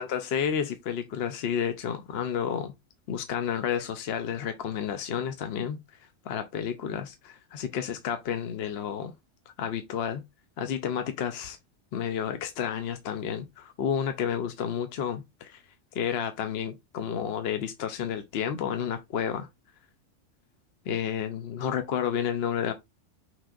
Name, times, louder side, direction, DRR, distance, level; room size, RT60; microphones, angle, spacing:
voice 1, 0.0-2.7 3.1-5.8 6.3-9.1 9.6-10.2 10.6-11.6 11.9-15.6 15.9-19.5 20.9-22.7, left 8 dB, 65° left, 0.8 m, -31 dB
6.0 x 3.4 x 2.4 m
omnidirectional pair, 1.3 m